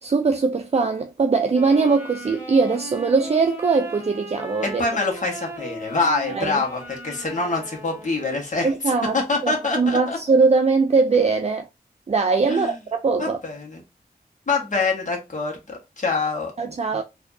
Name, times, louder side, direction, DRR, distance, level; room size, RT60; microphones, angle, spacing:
voice 1, 0.0-4.8 6.3-6.6 8.6-11.7 12.1-13.4 16.6-17.0, right 4 dB, 40° right, 0.4 m, -21 dB
Wind instrument woodwind instrument, 1.5-8.4, right 1 dB, 10° right, 1.5 m, -38 dB
voice 2, 4.6-10.2 12.5-12.7 13.2-13.8 14.5-16.5, left 3 dB, 50° left, 1.4 m, -25 dB
4.3 x 2.7 x 2.6 m
wide cardioid pair, 90°, 16 cm